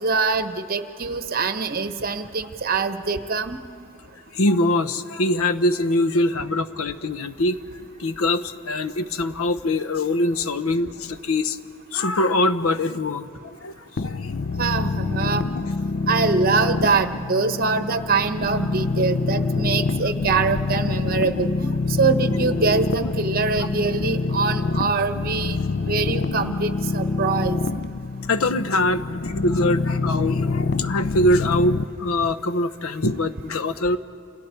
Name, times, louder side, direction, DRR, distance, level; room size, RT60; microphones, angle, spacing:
voice 1, 0.0-3.6 14.6-15.4 16.1-21.7 22.0-25.6 25.8-27.6, right 4 dB, 45° right, 9 dB, 1.1 m, -23 dB
voice 2, 4.3-7.6 8.0-11.6 11.9-13.7 14.0-14.3 25.6-25.7 28.3-34.0, left 1 dB, 90° left, 11 dB, 0.8 m, -23 dB
sound 1, 14.0-31.8, left 3 dB, 50° left, 0.5 m, -26 dB
29.0 x 27.0 x 4.6 m, 2.4 s
head